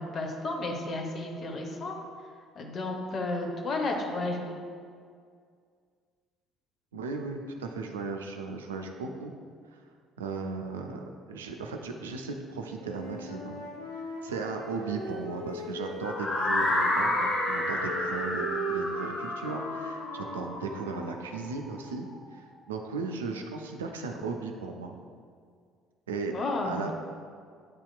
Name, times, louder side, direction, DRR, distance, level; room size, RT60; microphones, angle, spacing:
voice 1, 0.0-2.0 2.6-4.5 26.3-26.9, left 2 dB, 45° left, 2 dB, 0.7 m, -32 dB
voice 2, 6.9-9.3 9.7-9.8 10.2-13.6 13.9-24.9 26.1-26.3 26.6-26.9, right 4 dB, 80° right, 4 dB, 0.3 m, -36 dB
Wind instrument woodwind instrument, 12.7-16.5 16.7-21.1, right 1 dB, 90° left, 0.5 m, -38 dB
sound 1, 16.0-21.9, left 1 dB, 20° left, 1.2 m, -30 dB
7.6 x 2.8 x 2.3 m, 2.1 s
figure-of-eight pair, 50°, 0 cm